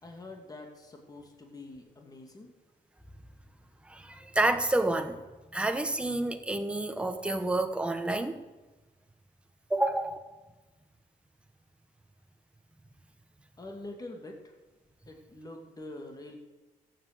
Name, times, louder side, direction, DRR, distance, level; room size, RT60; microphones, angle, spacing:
voice 1, 0.0-2.5 13.6-14.6 15.1-16.4, left 2 dB, 25° left, 2 dB, 2.5 m, -45 dB
voice 2, 3.8-5.2 5.5-8.4 9.7-10.2, right 2 dB, 5° right, 6 dB, 1.2 m, -29 dB
14.5 x 7.9 x 7.8 m, 1.2 s
cardioid pair, 95°, 15 cm